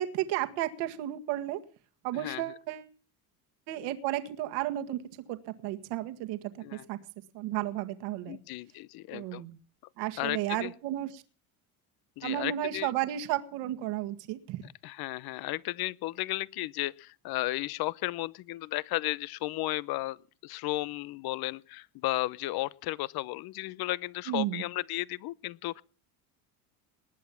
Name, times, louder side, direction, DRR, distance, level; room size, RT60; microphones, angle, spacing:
voice 1, 0.0-1.6 2.0-2.9 3.7-5.0 5.3-7.0 7.3-8.4 9.1-9.6 10.0-11.2 12.2-14.6 24.3-24.6, right 13 dB, 70° right, 1.9 m, -33 dB
voice 2, 2.1-2.4 6.6-6.9 8.3-9.4 10.2-10.7 12.2-12.9 14.8-20.2 20.4-25.8, left 18 dB, 55° left, 0.8 m, -34 dB
20.0 x 8.6 x 7.3 m
supercardioid pair, 105°, 44 cm